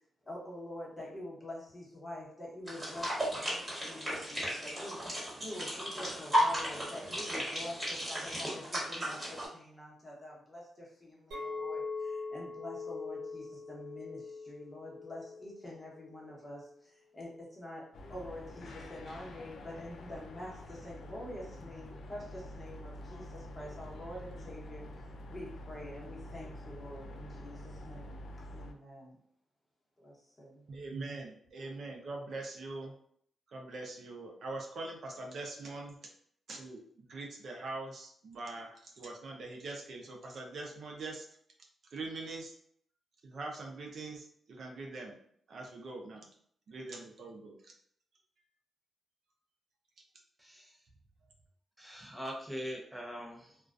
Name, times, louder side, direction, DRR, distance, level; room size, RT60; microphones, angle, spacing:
voice 1, 0.3-28.2 28.5-29.2 30.0-30.7, left 1 dB, 25° left, -4 dB, 1.0 m, -46 dB
sound 1, 2.7-9.4, equal, 20° right, 1.4 m, -34 dB
Chink clink, 11.3-16.5, left 4 dB, 90° right, 0.9 m, -42 dB
sound 2, 17.9-28.7, left 1 dB, 75° left, 0.4 m, -47 dB
voice 2, 30.7-32.9 33.5-36.0 36.5-41.3 41.9-42.5 43.2-45.1 45.5-46.3 46.7-47.7, right 2 dB, 65° right, 1 dB, 0.5 m, -43 dB
voice 3, 50.4-50.8 51.8-53.6, equal, 5° right, -2 dB, 0.6 m, -42 dB
2.3 x 2.2 x 2.5 m, 0.64 s
cardioid pair, 80°, 0 cm